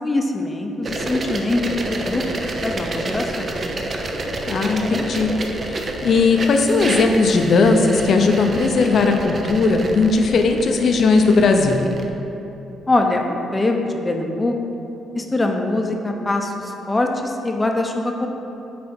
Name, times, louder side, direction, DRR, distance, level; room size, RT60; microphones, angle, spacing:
voice 1, 0.0-3.5 12.9-14.5 15.1-18.3, left 2 dB, 20° left, 3 dB, 0.7 m, -23 dB
sound 1, 0.8-12.1, right 2 dB, 40° right, 0.7 m, -28 dB
voice 2, 4.5-5.3 5.6-11.8, left 4 dB, 55° left, 4 dB, 0.7 m, -17 dB
8.5 x 4.2 x 4.4 m, 3.0 s
cardioid pair, 90°, 0 cm